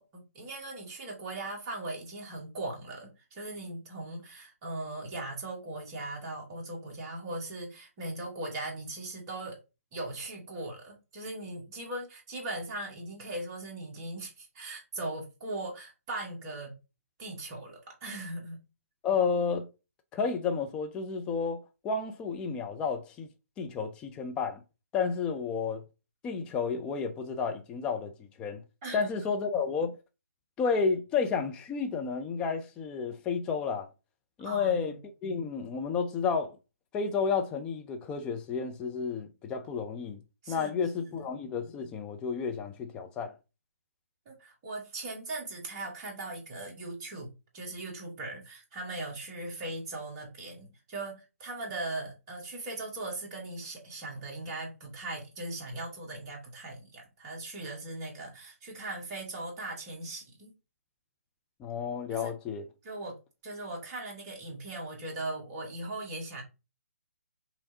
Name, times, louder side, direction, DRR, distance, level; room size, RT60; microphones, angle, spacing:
voice 1, 0.0-9.6 9.9-16.7 17.2-18.6 28.8-29.1 34.4-34.8 40.4-40.7 41.0-41.2 44.2-60.5 62.1-62.3 62.8-63.2 63.4-66.4, right 2 dB, 25° right, 1.5 m, -39 dB
voice 2, 19.0-19.7 20.1-23.3 23.6-24.6 24.9-25.8 26.2-28.6 28.9-29.9 30.6-33.9 34.4-36.6 36.9-40.2 40.5-43.3 61.6-62.6, left 5 dB, 10° left, 0.4 m, -31 dB
5.4 x 3.1 x 2.7 m
figure-of-eight pair, 140°, 8 cm